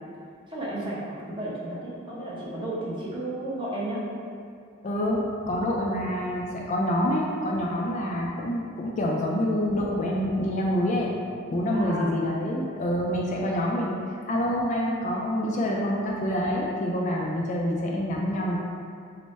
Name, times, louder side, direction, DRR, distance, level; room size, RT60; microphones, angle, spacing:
voice 1, 0.5-4.0 11.7-12.0, right 1 dB, 25° right, -7 dB, 0.7 m, -33 dB
voice 2, 4.8-11.1 11.5-14.0 14.3-18.6, equal, 35° left, -2 dB, 0.3 m, -27 dB
3.3 x 2.1 x 4.0 m, 2.3 s
head